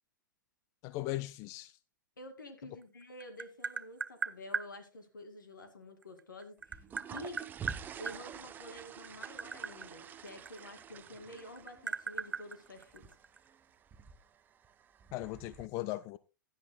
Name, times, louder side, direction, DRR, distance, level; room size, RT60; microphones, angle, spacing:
voice 1, 0.8-1.8 15.1-16.2, left 17 dB, 30° left, 0.4 m, -38 dB
voice 2, 2.2-6.8 7.1-7.4 8.0-13.1, left 1 dB, 70° left, 2.2 m, -49 dB
Tap, 2.8-4.7 6.0-8.2 8.9-11.1 11.4-13.4, right 5 dB, 75° right, 0.6 m, -38 dB
sound 1, 6.6-15.7, right 7 dB, 15° right, 0.7 m, -49 dB
16.0 x 10.5 x 2.2 m
figure-of-eight pair, 105°, 11 cm